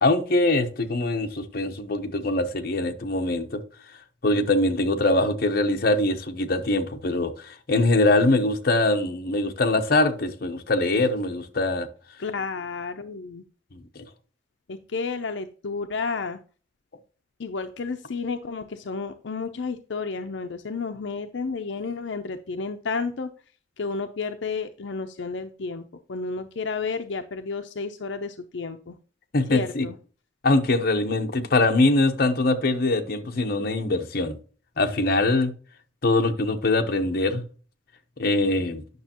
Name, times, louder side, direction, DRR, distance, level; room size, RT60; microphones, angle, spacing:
voice 1, 0.0-3.6 4.2-11.9 13.7-13.8 29.3-29.8 30.4-34.4 34.8-35.5 36.0-37.4 38.2-38.8, left 2 dB, 55° left, 0.9 m, -23 dB
voice 2, 12.2-13.4 14.7-16.4 17.4-23.3 23.8-25.8 26.1-29.0 29.5-30.0, left 4 dB, 80° left, 0.6 m, -31 dB
9.5 x 6.2 x 2.9 m
head